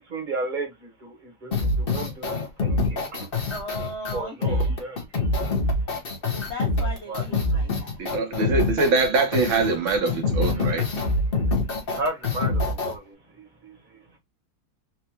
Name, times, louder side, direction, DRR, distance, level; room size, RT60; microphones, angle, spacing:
voice 1, 0.0-3.3 4.1-5.3 7.1-7.2 10.5-10.7 11.9-14.0, right 2 dB, 30° right, 1.2 m, -34 dB
sound 1, 1.5-12.9, left 2 dB, 40° left, 0.9 m, -25 dB
voice 2, 3.5-4.8 6.3-7.9, left 1 dB, 85° left, 0.5 m, -37 dB
voice 3, 8.0-10.9, right 3 dB, 75° right, 1.8 m, -23 dB
4.4 x 2.6 x 2.9 m
omnidirectional pair, 2.2 m